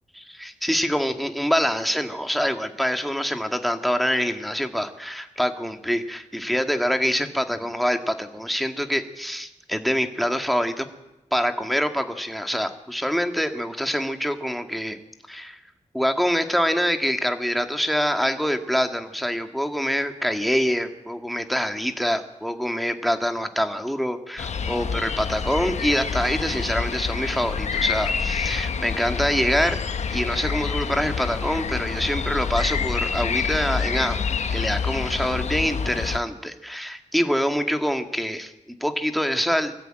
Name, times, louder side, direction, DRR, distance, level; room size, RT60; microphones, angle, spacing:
voice 1, 0.1-10.9 11.3-15.0 15.3-15.6 15.9-29.8 30.1-38.5 38.8-39.7, equal, ahead, 6 dB, 2.0 m, -25 dB
sound 1, 24.4-36.2, left 6 dB, 65° left, 1.2 m, -27 dB
23.5 x 14.0 x 9.0 m, 0.96 s
cardioid pair, 75°, 13 cm